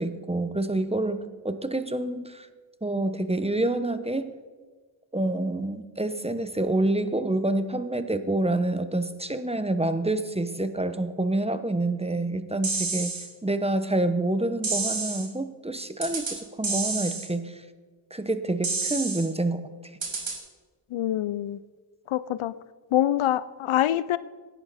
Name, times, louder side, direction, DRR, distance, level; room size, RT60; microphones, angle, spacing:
voice 1, 0.0-2.5 2.8-4.3 5.1-13.1 13.4-17.6 18.1-19.6, right 2 dB, 15° right, 10 dB, 1.0 m, -27 dB
sound 1, 12.6-13.3 14.6-15.3 16.0-16.4 16.6-17.3 18.6-19.3 20.0-20.4, right 4 dB, 70° right, 2.6 m, -29 dB
voice 2, 20.9-21.6 22.1-22.5 22.9-24.2, left 12 dB, 80° left, 16 dB, 0.6 m, -25 dB
15.0 x 10.5 x 4.2 m, 1.4 s
cardioid pair, 45°, 48 cm